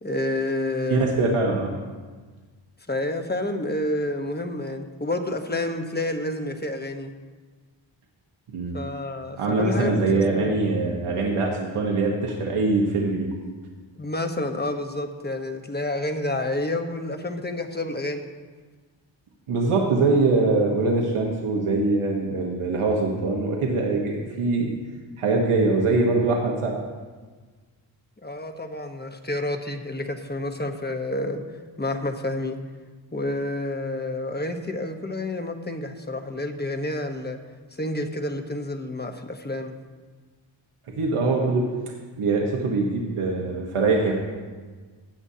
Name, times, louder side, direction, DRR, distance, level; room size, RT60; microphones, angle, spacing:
voice 1, 0.0-1.1 2.9-7.1 8.7-10.6 14.0-18.3 28.2-31.4 31.8-32.6 33.1-37.4 37.7-39.7, left 1 dB, 20° left, 6 dB, 1.1 m, -29 dB
voice 2, 0.9-1.7 8.5-8.7 9.4-13.3 19.5-24.7 25.2-26.8 41.0-41.7 42.2-44.1, right 3 dB, 90° right, -1 dB, 1.4 m, -23 dB
16.0 x 8.8 x 2.8 m, 1.4 s
cardioid pair, 70°, 49 cm